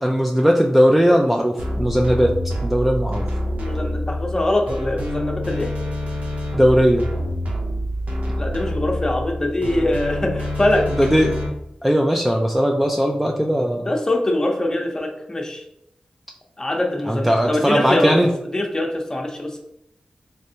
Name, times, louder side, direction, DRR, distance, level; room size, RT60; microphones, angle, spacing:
voice 1, 0.0-2.3 2.6-3.3 6.5-7.0 11.0-11.5 11.8-13.9 17.1-18.3, equal, 5° right, 1 dB, 0.3 m, -18 dB
sound 1, 1.6-11.5, left 1 dB, 75° right, 0.7 m, -26 dB
voice 2, 3.5-5.7 8.4-10.9 13.9-15.6 16.6-18.2 18.4-19.6, left 1 dB, 25° left, 2 dB, 0.7 m, -23 dB
3.3 x 3.2 x 2.8 m, 0.81 s
wide cardioid pair, 80°, 3 cm